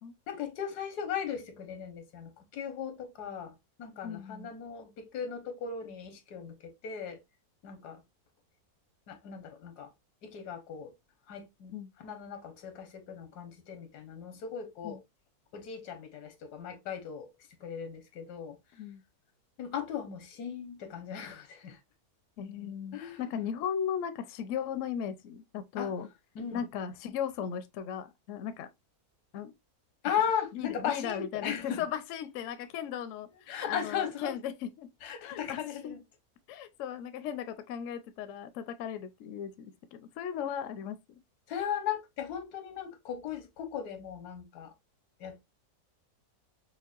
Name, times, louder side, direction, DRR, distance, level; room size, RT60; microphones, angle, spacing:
voice 1, 0.3-7.2 7.6-8.0 9.1-9.9 10.2-10.9 11.3-15.0 15.5-17.3 17.6-18.6 19.6-21.8 22.9-23.2 25.8-25.9 26.3-26.6 30.0-31.9 33.3-34.3 35.0-36.0 41.5-44.7 45.2-45.4, left 8 dB, 85° left, 1.4 m, -37 dB
voice 2, 4.0-4.5 11.7-11.9 14.8-15.0 18.8-19.0 22.4-26.1 26.5-28.7 29.3-29.5 30.5-34.9 35.2-35.6 35.8-36.0 36.5-41.0, left 8 dB, 70° left, 0.8 m, -37 dB
5.2 x 2.2 x 2.3 m
omnidirectional pair, 1.6 m